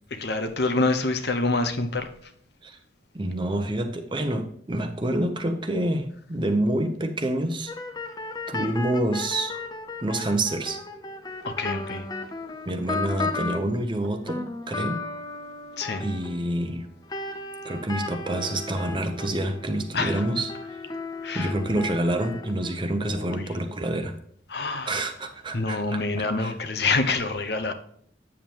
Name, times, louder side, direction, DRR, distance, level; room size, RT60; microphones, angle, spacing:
voice 1, 0.1-2.3 11.4-12.1 15.8-16.0 19.9-20.2 21.2-21.5 23.0-23.5 24.5-25.0 25.5-27.7, left 3 dB, 60° left, 0.9 m, -27 dB
voice 2, 3.1-7.7 8.5-9.6 10.0-10.8 12.7-15.0 16.0-16.9 17.6-20.5 21.3-24.1 24.9-26.5, right 1 dB, 25° right, 0.8 m, -27 dB
sound 1, 7.7-13.7 14.0-22.9, left 3 dB, 20° left, 0.7 m, -35 dB
8.7 x 7.3 x 3.0 m
head